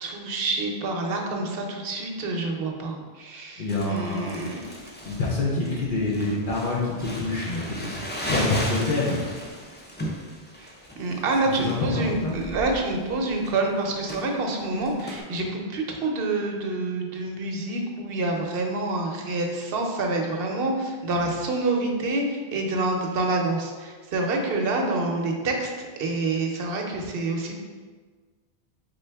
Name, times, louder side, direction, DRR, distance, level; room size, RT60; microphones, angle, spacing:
voice 1, 0.0-4.6 10.6-10.7 11.0-27.6, right 2 dB, 65° right, 2 dB, 0.8 m, -27 dB
voice 2, 3.6-4.5 5.1-9.2 11.5-12.4, left 2 dB, 55° left, -5 dB, 0.9 m, -27 dB
Crumpling crinkling, 3.7-15.2, equal, 15° left, 0.4 m, -36 dB
3.8 x 3.8 x 3.4 m, 1.5 s
omnidirectional pair, 1.1 m